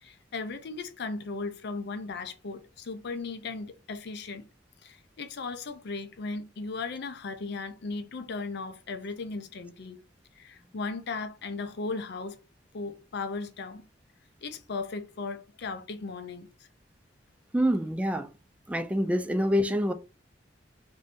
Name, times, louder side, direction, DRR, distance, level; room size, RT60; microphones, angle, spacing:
voice 1, 0.0-4.4 4.8-10.0 10.4-12.4 12.7-13.8 14.4-16.5, left 4 dB, 60° left, 0.5 m, -36 dB
voice 2, 17.5-18.3 18.7-19.9, equal, 5° right, 0.3 m, -26 dB
2.7 x 2.6 x 3.3 m
head